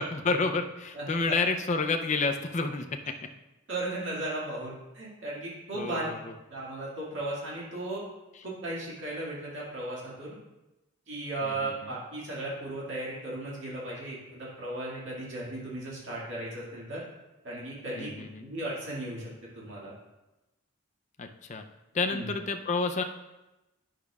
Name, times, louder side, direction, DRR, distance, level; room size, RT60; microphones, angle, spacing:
voice 1, 0.0-3.1 5.7-6.3 8.3-8.5 11.4-11.9 18.0-18.5 21.2-21.6 21.9-23.0, left 3 dB, 35° left, 5 dB, 0.5 m, -30 dB
voice 2, 3.7-6.1 6.5-8.0 8.4-10.3 11.1-17.0 17.4-19.9 22.1-22.3, right 2 dB, 60° right, -6 dB, 2.1 m, -36 dB
10.0 x 6.5 x 2.4 m, 1.0 s
head